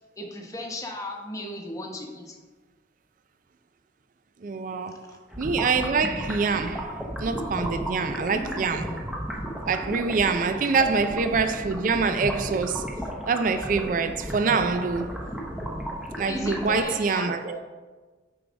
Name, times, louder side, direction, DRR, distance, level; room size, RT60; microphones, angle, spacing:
voice 1, 0.2-2.4 10.7-11.0 16.3-17.6, left 1 dB, 20° left, 1.0 m, -35 dB
voice 2, 4.4-5.1 5.4-9.0 9.6-13.0 13.3-15.2 16.2-17.6, right 4 dB, 45° right, 0.4 m, -25 dB
sound 1, 5.3-16.8, equal, ahead, 0.7 m, -34 dB
6.9 x 4.7 x 5.1 m
head